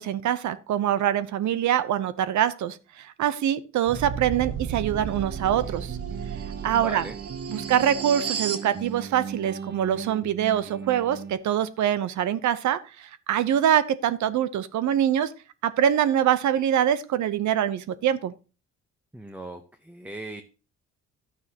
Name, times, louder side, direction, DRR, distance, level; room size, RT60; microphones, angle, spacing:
voice 1, 0.0-6.0 6.6-7.0 7.5-15.3 15.6-18.3, right 10 dB, 70° right, 14 dB, 0.8 m, -24 dB
sound 1, 3.9-8.7, right 7 dB, 50° right, 1.4 m, -33 dB
sound 2, 4.8-11.3, right 7 dB, 35° right, 0.8 m, -38 dB
voice 2, 6.7-7.2 19.1-20.4, right 1 dB, 5° right, 7 dB, 0.9 m, -38 dB
11.5 x 9.4 x 2.9 m, 0.33 s
cardioid pair, 90°, 30 cm